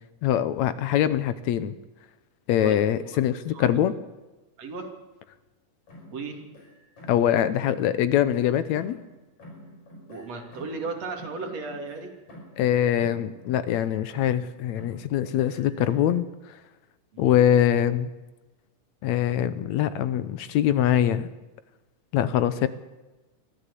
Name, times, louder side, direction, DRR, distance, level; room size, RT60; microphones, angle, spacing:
voice 1, 0.2-1.8 2.5-3.9 7.1-9.0 12.6-16.3 17.2-18.1 19.0-21.3 22.1-22.7, left 10 dB, 75° left, 14 dB, 2.1 m, -23 dB
voice 2, 2.6-3.2 3.5-3.8 4.6-4.9 6.1-6.4 10.1-12.1 17.1-17.4, right 3 dB, 60° right, 3 dB, 3.6 m, -36 dB
sound 1, 5.9-7.4 7.6-9.1 9.4-12.7 13.0-14.5 14.8-16.2, equal, 50° left, 6.2 m, -47 dB
22.5 x 14.5 x 8.3 m, 1.1 s
omnidirectional pair, 3.4 m